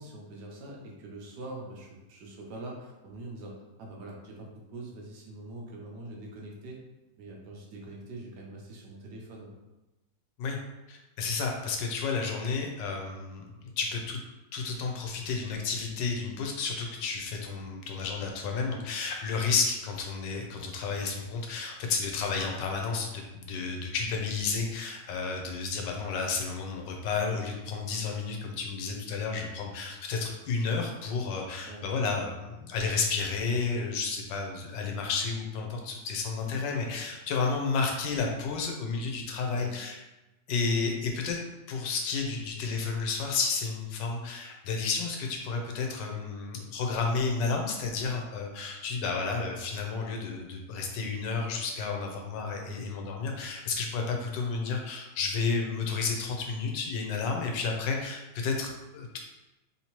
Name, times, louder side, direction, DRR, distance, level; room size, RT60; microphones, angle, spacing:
voice 1, 0.0-6.8 7.2-9.5 31.6-31.8 36.4-36.6 39.5-39.7 52.6-52.9, right 2 dB, 75° right, -1 dB, 1.3 m, -44 dB
voice 2, 10.9-14.2 14.5-40.0 40.5-41.4 41.7-59.2, left 4 dB, 85° left, 2 dB, 1.3 m, -31 dB
3.5 x 2.8 x 2.9 m, 1.0 s
omnidirectional pair, 1.9 m